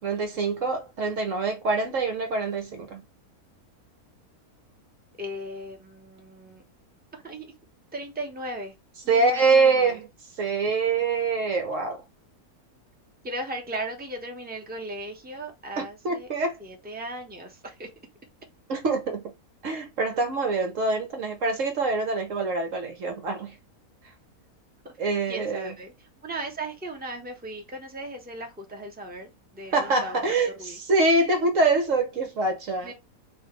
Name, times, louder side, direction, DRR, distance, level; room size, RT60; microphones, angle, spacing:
voice 1, 0.0-3.0 9.1-10.1 10.4-12.0 15.8-16.6 18.7-19.3 19.6-23.6 25.0-25.7 29.7-32.9, right 3 dB, 60° right, 1.2 m, -25 dB
voice 2, 5.2-6.6 7.1-7.5 7.9-8.7 9.0-10.0 13.2-16.3 16.6-17.9 24.8-24.9 25.3-25.9 26.2-30.2 30.6-30.8 32.8-32.9, right 1 dB, 5° right, 1.1 m, -37 dB
5.5 x 2.7 x 3.2 m
omnidirectional pair, 1.6 m